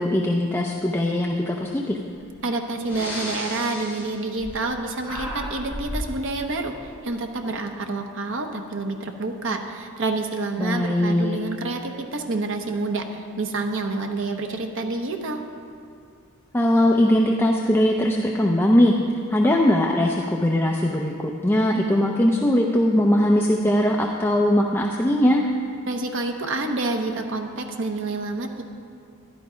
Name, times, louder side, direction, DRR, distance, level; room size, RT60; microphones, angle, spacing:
voice 1, 0.0-2.0 10.6-11.4 16.5-18.9 19.3-25.4, left 1 dB, 10° left, 0 dB, 0.6 m, -20 dB
Breathing, 2.2-2.3 2.8-4.8 5.0-6.1, left 1 dB, 10° right, 3.8 m, -33 dB
voice 2, 2.4-15.4 25.9-28.6, right 3 dB, 60° right, 4 dB, 0.9 m, -28 dB
11.5 x 11.5 x 5.1 m, 2.3 s
head